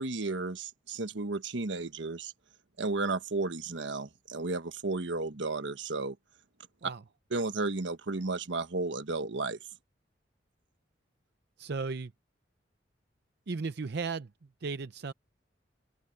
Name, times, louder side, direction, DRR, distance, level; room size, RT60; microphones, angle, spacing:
voice 1, 0.0-2.3 2.8-6.2 7.3-9.6, right 3 dB, 90° right, 1.3 m, -33 dB
voice 2, 11.6-12.1 13.5-14.3 14.6-15.1, right 4 dB, 60° right, 0.6 m, -35 dB
head